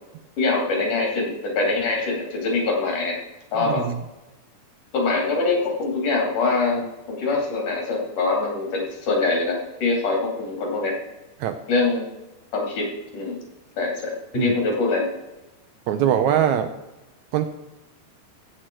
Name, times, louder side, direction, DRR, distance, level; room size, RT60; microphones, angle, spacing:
voice 1, 0.4-3.2 3.5-3.8 4.9-11.0 11.7-12.0 12.5-12.9 13.1-13.4 13.8-15.1, left 3 dB, 70° left, 0 dB, 4.0 m, -24 dB
voice 2, 3.6-4.0 11.4-11.6 14.4-14.5 15.9-16.7 17.3-17.5, right 10 dB, 75° right, 8 dB, 1.8 m, -22 dB
16.0 x 7.9 x 4.5 m, 1.0 s
omnidirectional pair, 3.7 m